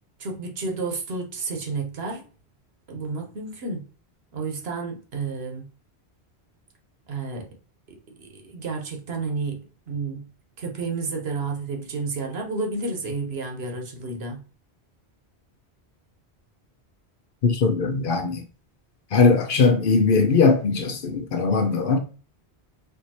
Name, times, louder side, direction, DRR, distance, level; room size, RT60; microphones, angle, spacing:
voice 1, 0.2-2.3 2.9-3.8 4.3-5.7 7.1-7.5 7.9-9.6 9.9-10.2 10.6-14.4, right 4 dB, 70° right, 1.1 m, -31 dB
voice 2, 17.4-18.4 19.1-22.0, left 4 dB, 60° left, 0.7 m, -20 dB
4.6 x 2.6 x 2.8 m
omnidirectional pair, 1.1 m